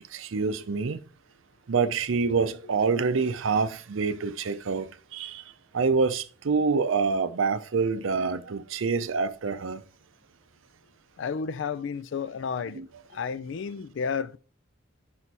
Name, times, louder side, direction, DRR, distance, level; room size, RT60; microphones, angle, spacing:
voice 1, 0.1-1.0 1.7-5.4 5.7-9.8 12.7-12.9, right 4 dB, 75° right, 0.5 m, -26 dB
voice 2, 11.2-12.8 13.1-14.4, left 6 dB, 60° left, 0.4 m, -31 dB
5.6 x 4.2 x 4.6 m
head